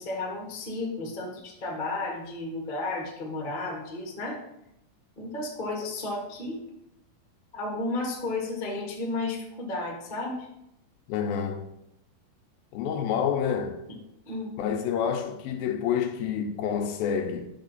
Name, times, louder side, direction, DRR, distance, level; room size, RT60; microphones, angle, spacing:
voice 1, 0.0-4.4 5.2-6.6 7.5-10.5 13.9-14.0 14.3-14.6, left 2 dB, 50° left, 0.5 m, -33 dB
voice 2, 11.1-11.7 12.7-13.8 14.6-17.5, left 7 dB, 80° left, 2.5 m, -28 dB
9.4 x 6.3 x 4.1 m
omnidirectional pair, 4.3 m